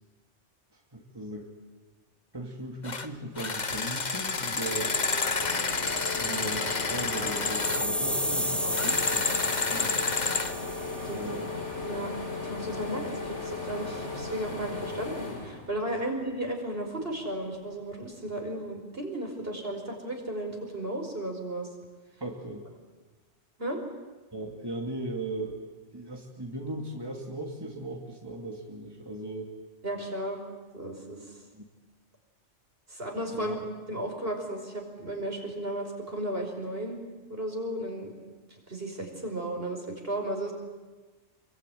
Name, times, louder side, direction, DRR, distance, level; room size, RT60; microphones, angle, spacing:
voice 1, 0.7-1.5 2.3-5.0 6.2-10.0 11.1-11.6 22.2-22.7 24.3-25.6 25.9-29.5 31.5-31.7 33.3-33.6, right 1 dB, 20° right, 0 dB, 2.8 m, -38 dB
sound 1, 2.8-3.1 3.4-7.9 8.7-10.5, left 4 dB, 40° left, 1.3 m, -29 dB
sound 2, 3.7-16.3 16.7-17.9, left 3 dB, 80° left, 4.0 m, -37 dB
sound 3, 7.1-11.3, equal, ahead, 2.0 m, -33 dB
voice 2, 12.4-21.7 23.6-23.8 29.8-30.4 30.7-31.3 32.9-33.6 33.9-37.0 37.3-38.2 38.7-40.5, right 1 dB, 55° right, 2 dB, 5.6 m, -34 dB
27.0 x 23.5 x 9.4 m, 1.3 s
omnidirectional pair, 1.2 m